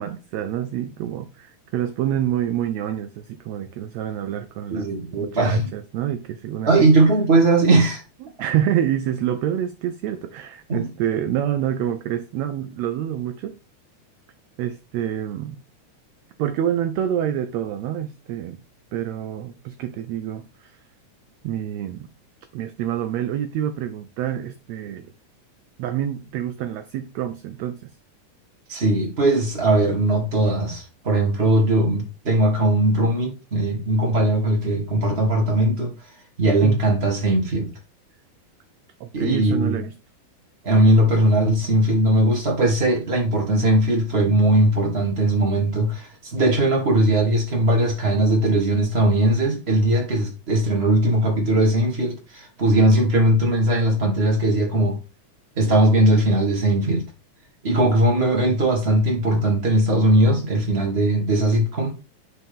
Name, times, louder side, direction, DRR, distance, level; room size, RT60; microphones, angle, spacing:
voice 1, 0.0-4.9 5.1-6.9 8.4-13.6 14.6-15.6 16.4-18.6 18.9-20.8 21.4-22.1 22.5-25.1 25.8-27.9 36.6-36.8 39.0-39.9, right 10 dB, 75° right, 1.7 m, -27 dB
voice 2, 4.7-5.7 6.6-8.0 10.7-10.9 28.7-35.9 36.4-37.7 39.1-39.7 40.6-55.0 55.6-57.1 57.6-62.0, right 1 dB, 20° right, 2.3 m, -19 dB
9.9 x 4.4 x 3.5 m
omnidirectional pair, 3.6 m